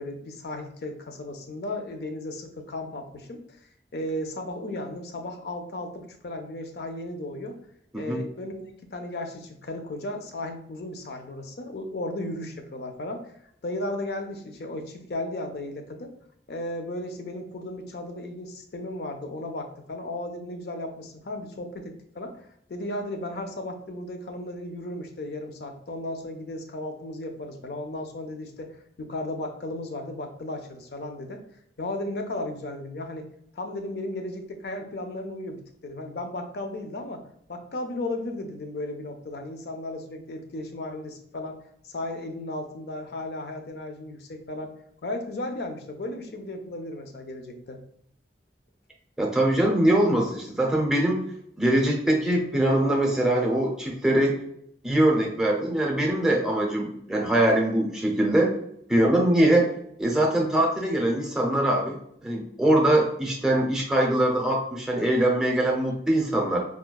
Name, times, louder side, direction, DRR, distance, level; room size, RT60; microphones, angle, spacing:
voice 1, 0.0-3.4 3.9-7.6 7.9-13.2 13.6-16.1 16.5-31.4 31.8-33.3 33.5-37.2 37.5-44.7 45.0-47.8, left 1 dB, 65° left, 5 dB, 0.5 m, -35 dB
voice 2, 49.2-51.2 51.6-54.4 54.8-58.5 58.9-59.7 60.0-66.6, right 1 dB, 5° right, -2 dB, 0.6 m, -22 dB
4.8 x 2.1 x 2.2 m, 0.71 s
head